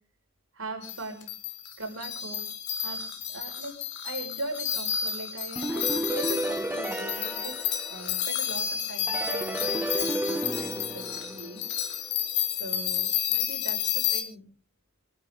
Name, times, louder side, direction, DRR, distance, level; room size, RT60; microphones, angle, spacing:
voice 1, 0.5-1.3 1.8-2.5 2.8-3.0 3.3-3.8 4.0-11.8 12.5-14.4, right 2 dB, 75° right, 3 dB, 5.7 m, -40 dB
sound 1, 0.8-14.2, left 9 dB, 55° left, 2.7 m, -31 dB
sound 2, 5.6-8.4 9.1-11.9, right 1 dB, 10° right, 0.8 m, -32 dB
26.0 x 12.5 x 3.8 m, 0.38 s
head